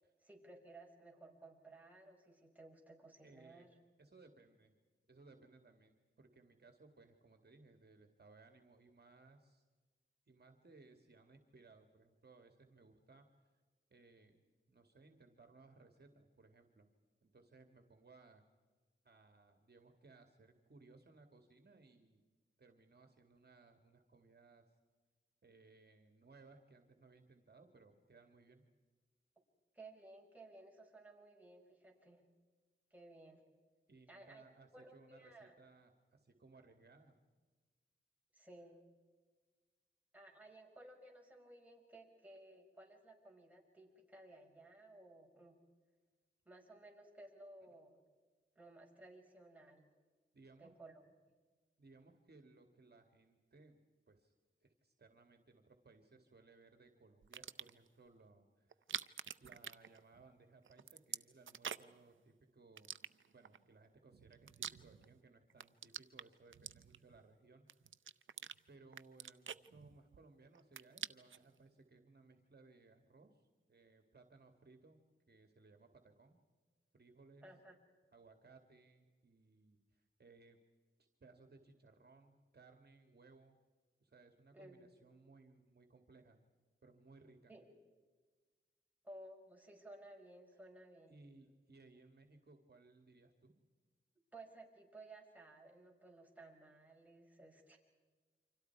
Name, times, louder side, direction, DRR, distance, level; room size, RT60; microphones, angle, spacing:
voice 1, 0.2-3.7 29.7-32.3 32.9-33.4 34.1-34.4 34.7-35.5 38.3-38.8 40.1-45.6 46.5-48.0 48.6-49.9 50.6-50.9 77.4-77.8 84.5-84.9 87.5-87.6 89.0-91.2 94.3-97.8, right 2 dB, 10° right, 0 dB, 5.5 m, -57 dB
voice 2, 3.2-3.7 4.0-4.7 5.1-9.6 10.3-13.3 13.9-16.9 17.2-18.4 19.0-22.2 22.6-24.7 25.4-28.6 33.9-37.2 50.3-50.7 51.8-53.8 54.1-54.3 54.6-58.8 59.4-62.9 63.3-67.7 68.7-75.0 75.3-76.4 76.9-77.5 78.1-80.6 81.2-83.6 84.0-86.4 86.8-87.5 91.1-93.5, right 3 dB, 55° right, 5 dB, 2.3 m, -63 dB
sound 1, 57.2-57.9 58.7-60.4 60.7-62.0 62.8-63.6 64.1-65.2 65.5-67.2 67.7-68.6 68.9-70.3 70.6-71.5, right 8 dB, 85° right, 0.6 m, -47 dB
29.5 x 25.5 x 4.8 m, 1.4 s
wide cardioid pair, 85°, 20 cm